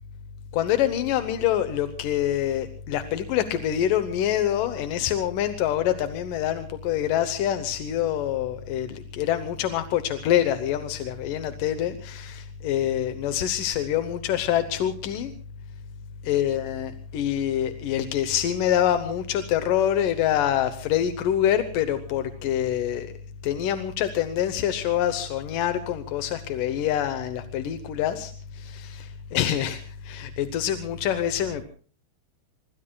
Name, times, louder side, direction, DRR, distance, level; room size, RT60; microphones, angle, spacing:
voice 1, 0.5-15.3 16.2-23.1 23.4-31.6, left 10 dB, 70° left, 9 dB, 2.1 m, -26 dB
25.5 x 25.0 x 2.3 m, 0.42 s
omnidirectional pair, 4.7 m